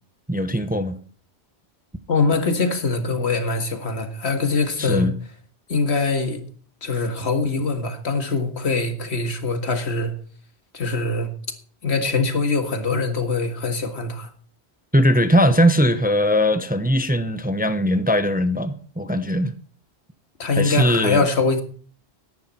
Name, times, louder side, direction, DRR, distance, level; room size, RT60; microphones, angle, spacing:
voice 1, 0.3-1.0 4.8-5.1 14.9-19.5 20.5-21.3, equal, 10° right, 0.8 m, -20 dB
voice 2, 2.1-5.1 5.7-6.4 6.8-10.1 10.7-11.3 11.8-14.3 20.4-21.6, left 3 dB, 75° left, 2.1 m, -23 dB
14.0 x 11.0 x 4.3 m
omnidirectional pair, 1.1 m